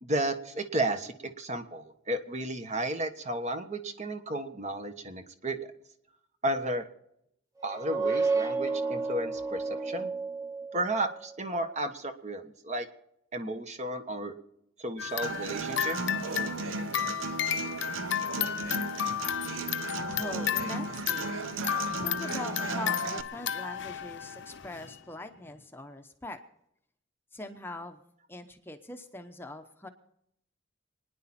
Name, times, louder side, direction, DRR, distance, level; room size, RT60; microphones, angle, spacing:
voice 1, 0.0-5.7 6.4-6.9 7.6-10.1 10.7-12.9 13.3-14.3 14.8-16.0, right 1 dB, 35° right, 7 dB, 1.3 m, -33 dB
sound 1, 7.6-11.2, right 4 dB, 15° right, 1.3 m, -31 dB
sound 2, 15.0-25.0, left 10 dB, 65° left, 0.7 m, -33 dB
Human voice / Acoustic guitar, 15.2-23.2, right 3 dB, 75° right, 0.8 m, -35 dB
voice 2, 20.1-21.3 21.9-26.4 27.3-28.0 28.3-29.9, left 1 dB, 10° left, 6 dB, 0.8 m, -42 dB
27.5 x 10.0 x 4.3 m, 0.77 s
head